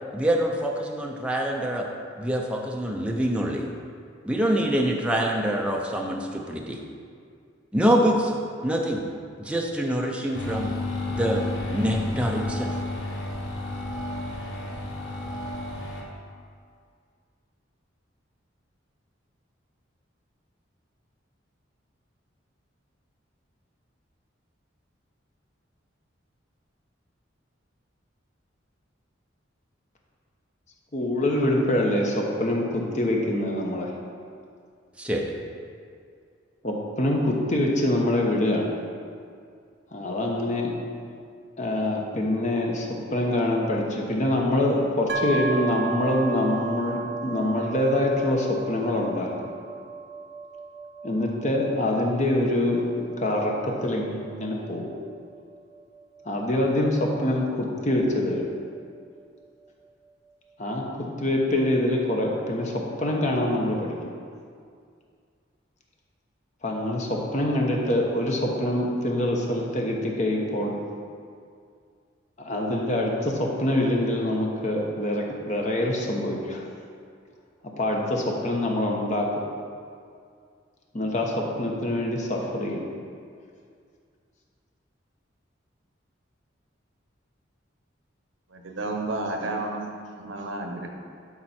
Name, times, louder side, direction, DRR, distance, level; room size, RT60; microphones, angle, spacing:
voice 1, 0.1-1.9 2.2-3.7 4.3-6.8 7.7-8.3 8.6-9.0 9.4-10.7 11.1-12.7 35.0-35.2, equal, 5° right, 0 dB, 0.6 m, -25 dB
sound 1, 10.3-16.0, left 2 dB, 75° left, 1.4 m, -32 dB
voice 2, 30.9-33.9 36.6-38.7 39.9-40.7 41.6-49.3 51.0-54.9 56.2-58.4 60.6-64.0 66.6-70.7 72.4-76.6 77.8-79.3 80.9-82.8, left 1 dB, 40° left, 0 dB, 1.0 m, -25 dB
sound 2, 45.1-58.8, right 4 dB, 60° right, 0.7 m, -36 dB
voice 3, 88.5-89.9 90.2-90.9, right 2 dB, 75° right, 3 dB, 1.0 m, -31 dB
12.0 x 4.3 x 4.4 m, 2.2 s
head